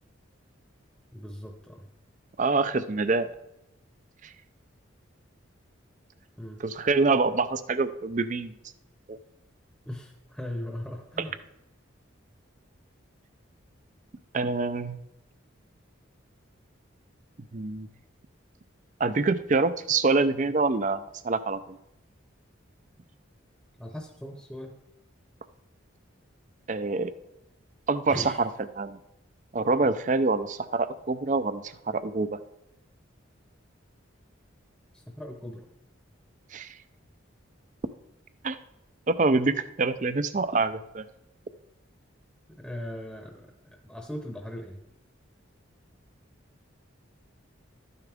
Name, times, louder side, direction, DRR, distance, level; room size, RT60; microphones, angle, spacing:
voice 1, 1.1-1.9 6.4-6.6 9.8-11.4 23.8-24.8 28.1-28.4 34.9-35.7 42.6-43.5 43.9-44.8, left 1 dB, ahead, 2 dB, 0.8 m, -39 dB
voice 2, 2.4-3.3 6.6-8.5 9.1-9.2 14.3-15.0 17.5-17.9 19.0-21.8 26.7-27.1 27.9-28.5 28.8-29.0 29.5-32.4 36.5-36.7 38.4-38.6 39.1-41.0, right 3 dB, 35° right, 13 dB, 0.5 m, -26 dB
12.5 x 9.5 x 3.5 m, 0.89 s
head